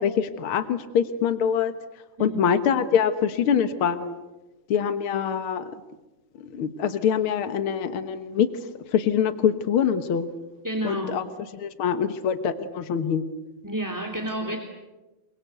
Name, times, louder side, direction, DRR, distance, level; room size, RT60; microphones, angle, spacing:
voice 1, 0.0-1.7 2.2-4.1 4.7-5.7 6.4-8.5 8.9-10.3 10.8-11.2 11.5-13.2 14.5-14.6, left 8 dB, 75° left, 10 dB, 1.2 m, -24 dB
voice 2, 10.6-11.3 13.6-14.6, right 1 dB, 5° right, 3 dB, 2.2 m, -30 dB
28.5 x 23.0 x 8.1 m, 1.1 s
omnidirectional pair, 4.3 m